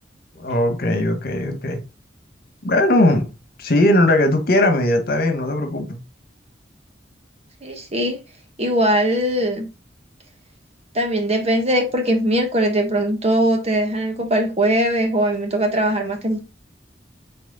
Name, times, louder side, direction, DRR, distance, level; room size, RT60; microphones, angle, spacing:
voice 1, 0.3-1.8 2.6-3.3 3.6-6.0, left 1 dB, 55° left, 1.4 m, -19 dB
voice 2, 7.6-8.2 8.6-9.7 10.9-16.4, right 1 dB, 35° right, 1.4 m, -20 dB
6.1 x 4.3 x 4.0 m
head